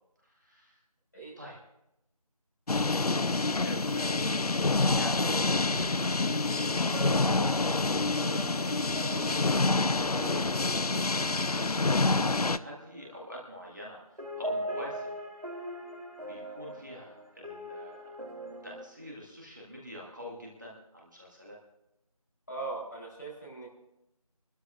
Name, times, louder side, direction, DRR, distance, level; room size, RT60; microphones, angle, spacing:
voice 1, 0.2-0.8 1.4-1.6 2.9-4.2 4.9-8.0 8.3-14.0 14.4-15.2 16.3-18.2 18.6-21.6, equal, 30° right, -4 dB, 2.0 m, -45 dB
sound 1, 2.7-12.6, left 3 dB, 75° left, 0.5 m, -27 dB
sound 2, 6.0-13.9 14.2-18.8, right 1 dB, 70° right, 3.7 m, -42 dB
voice 2, 22.5-23.7, right 3 dB, 30° left, -5 dB, 3.9 m, -39 dB
23.5 x 13.0 x 2.6 m, 0.86 s
figure-of-eight pair, 175°, 19 cm